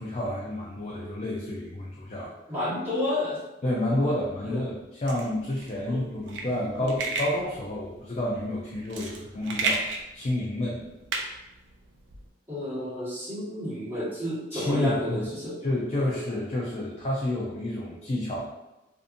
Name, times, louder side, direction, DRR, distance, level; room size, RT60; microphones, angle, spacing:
voice 1, 0.0-2.3 3.6-10.9 11.3-11.4 14.5-15.2 15.6-18.4, left 1 dB, 40° left, -4 dB, 0.4 m, -30 dB
voice 2, 2.5-3.4 4.0-4.2 4.4-4.7 5.9-6.0 6.8-7.0 12.5-15.5, left 1 dB, 15° right, -11 dB, 1.4 m, -30 dB
sound 1, 5.1-12.2, right 3 dB, 75° right, 0.4 m, -33 dB
2.6 x 2.5 x 2.5 m, 1.0 s
head